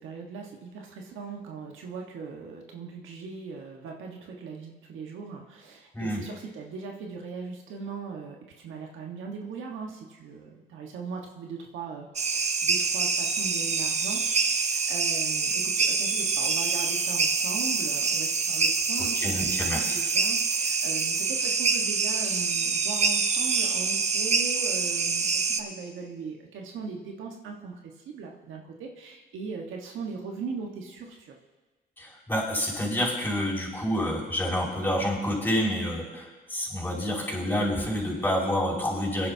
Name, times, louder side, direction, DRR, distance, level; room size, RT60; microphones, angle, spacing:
voice 1, 0.0-27.7 28.0-31.3, right 5 dB, 80° right, 1 dB, 1.5 m, -39 dB
voice 2, 5.9-6.2 19.0-19.9 32.0-39.3, equal, 10° left, -5 dB, 5.1 m, -28 dB
sound 1, 12.2-25.6, right 4 dB, 35° right, 0.9 m, -26 dB
22.5 x 10.5 x 2.8 m, 1.2 s
cardioid pair, 90°, 20 cm